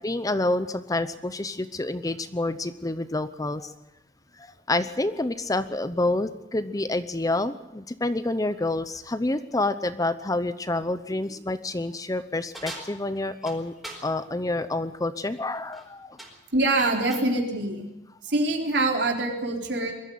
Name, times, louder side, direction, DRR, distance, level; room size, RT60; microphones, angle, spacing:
voice 1, 0.0-3.7 4.4-13.7 14.0-16.2, left 2 dB, 20° left, 12 dB, 0.8 m, -28 dB
sound 1, 12.5-14.1 15.6-15.9 16.2-17.3, right 1 dB, ahead, 4.1 m, -42 dB
voice 2, 16.5-17.9 18.3-19.9, right 2 dB, 65° right, 1 dB, 3.9 m, -24 dB
22.0 x 13.5 x 9.4 m, 0.94 s
head